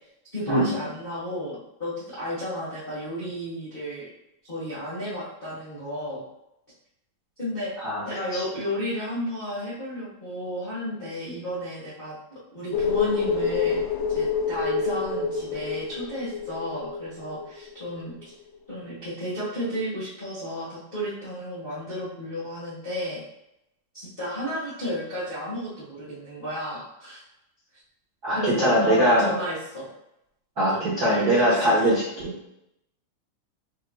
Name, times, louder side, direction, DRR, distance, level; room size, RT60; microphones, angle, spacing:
voice 1, 0.3-4.1 4.4-6.2 7.4-7.7 8.0-12.1 12.5-18.3 18.7-23.2 23.9-27.2 28.3-29.9 30.7-32.0, equal, 45° left, -10 dB, 0.7 m, -33 dB
sound 1, 12.7-18.0 18.2-18.3, left 5 dB, 90° left, 1.6 m, -27 dB
voice 2, 28.2-29.3 30.6-32.3, equal, 65° right, -8 dB, 0.9 m, -22 dB
7.5 x 2.7 x 2.3 m, 0.84 s
omnidirectional pair, 3.7 m